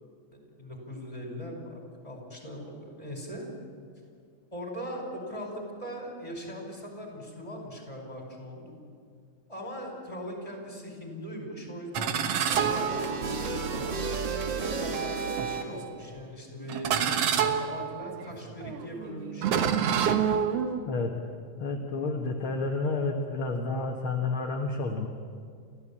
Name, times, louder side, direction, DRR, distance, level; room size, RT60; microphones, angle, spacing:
voice 1, 0.5-3.5 4.5-8.7 9.5-14.0 14.6-19.7, equal, 10° left, 1 dB, 5.0 m, -40 dB
sound 1, 11.9-13.6 14.4-14.6 15.4-15.9 16.7-20.8, right 8 dB, 60° right, 2.0 m, -28 dB
sound 2, 12.5-15.9, right 5 dB, 45° right, 1.8 m, -32 dB
voice 2, 20.9-21.2 21.6-25.1, left 3 dB, 50° left, 1 dB, 2.0 m, -30 dB
30.0 x 14.0 x 8.7 m, 2.1 s
omnidirectional pair, 3.5 m